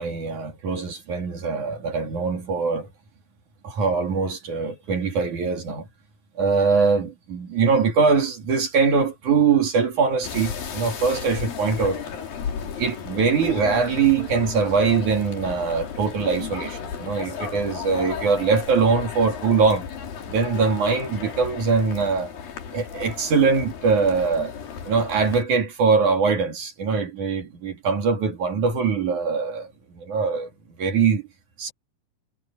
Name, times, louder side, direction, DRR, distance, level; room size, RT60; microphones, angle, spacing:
voice 1, 0.0-2.9 3.6-5.9 6.4-12.0 12.8-19.9 20.3-22.3 22.7-24.5 24.9-30.5 30.8-31.2 31.6-31.7, right 5 dB, 60° right, 4.0 m, -22 dB
sound 1, 10.2-25.4, left 7 dB, 80° left, 4.7 m, -34 dB
omnidirectional pair, 4.1 m